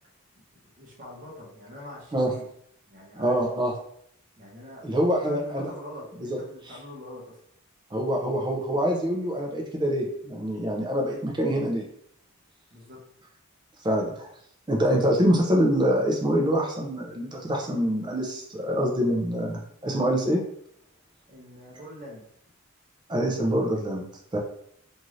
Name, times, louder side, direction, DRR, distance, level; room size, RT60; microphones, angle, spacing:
voice 1, 0.3-2.4 2.9-3.3 4.4-7.4 12.7-13.0 21.3-22.2, left 1 dB, 35° right, -3 dB, 0.8 m, -44 dB
voice 2, 3.2-3.7 4.8-5.7 6.2-6.4 6.7-6.8 7.9-11.9 13.8-14.3 14.7-20.4 23.1-24.1 24.3-24.4, equal, 20° right, 0 dB, 0.4 m, -25 dB
2.6 x 2.5 x 3.1 m, 0.68 s
head